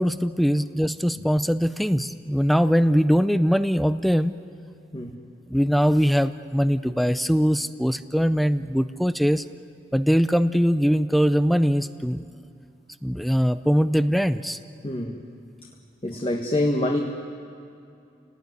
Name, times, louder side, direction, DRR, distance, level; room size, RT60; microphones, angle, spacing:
voice 1, 0.0-4.3 5.5-9.4 9.9-12.2 13.0-14.6, equal, ahead, 12 dB, 0.5 m, -21 dB
voice 2, 4.9-5.3 14.8-15.2 16.0-17.0, left 1 dB, 30° left, 1 dB, 1.5 m, -26 dB
29.5 x 18.5 x 9.5 m, 2.5 s
head